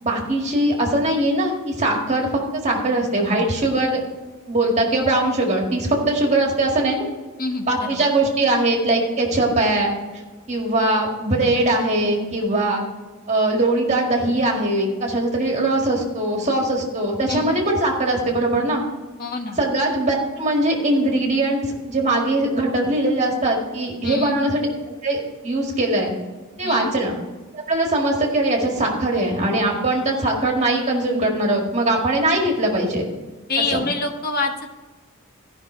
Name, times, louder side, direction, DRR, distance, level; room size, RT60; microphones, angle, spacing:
voice 1, 0.0-4.0 4.5-7.1 7.7-10.0 10.5-12.9 13.3-18.8 19.6-24.7 25.0-26.1 26.6-27.1 27.5-33.1 33.7-33.8, right 1 dB, 30° right, 0 dB, 1.9 m, -21 dB
voice 2, 7.4-8.1 17.3-17.6 19.2-19.6 24.0-24.4 26.6-26.9 33.5-34.7, left 3 dB, 45° left, 4 dB, 1.1 m, -26 dB
14.5 x 5.7 x 4.4 m, 1.3 s
head